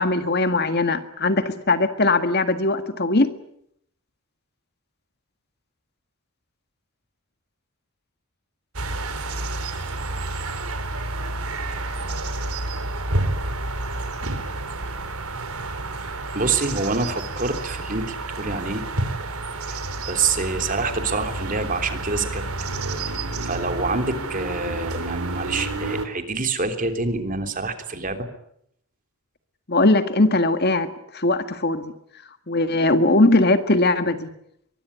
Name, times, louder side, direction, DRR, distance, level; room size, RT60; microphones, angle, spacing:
voice 1, 0.0-3.3 29.7-31.9 32.5-34.3, left 2 dB, 45° left, 9 dB, 1.8 m, -20 dB
sound 1, 8.7-26.1, right 2 dB, 80° right, 4.0 m, -29 dB
voice 2, 16.3-18.9 19.7-19.8 20.1-22.4 23.4-28.3, right 3 dB, 35° right, 7 dB, 3.4 m, -26 dB
23.5 x 22.0 x 10.0 m, 0.73 s
head